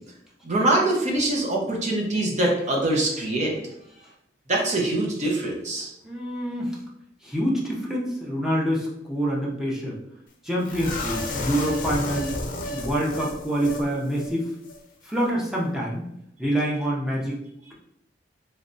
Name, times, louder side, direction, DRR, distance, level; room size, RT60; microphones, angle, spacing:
voice 1, 0.4-3.5 4.5-5.9, right 2 dB, 40° right, -1 dB, 0.8 m, -23 dB
voice 2, 6.0-6.8 7.2-10.0 10.4-12.3 12.7-14.5 15.0-16.1 16.4-17.4, equal, ahead, -4 dB, 0.7 m, -26 dB
sound 1, 10.7-13.9 14.1-14.3 14.6-14.8, left 2 dB, 50° left, 0.6 m, -31 dB
3.2 x 3.2 x 2.6 m, 0.79 s
head